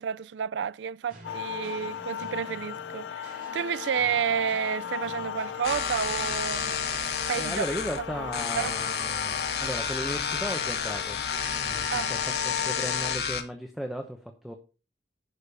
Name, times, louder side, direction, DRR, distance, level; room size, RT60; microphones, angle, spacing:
voice 1, 0.0-6.7 7.3-7.6 8.2-8.3 8.6-8.7 11.9-12.1, right 7 dB, 80° right, 0.4 m, -30 dB
sound 1, 1.1-6.8, right 1 dB, 50° right, 3.6 m, -49 dB
sound 2, 1.2-13.2, left 9 dB, 80° left, 0.3 m, -37 dB
sound 3, 5.6-13.4, left 6 dB, 60° left, 1.5 m, -31 dB
voice 2, 7.3-14.5, equal, ahead, 0.9 m, -36 dB
11.5 x 5.2 x 5.3 m
head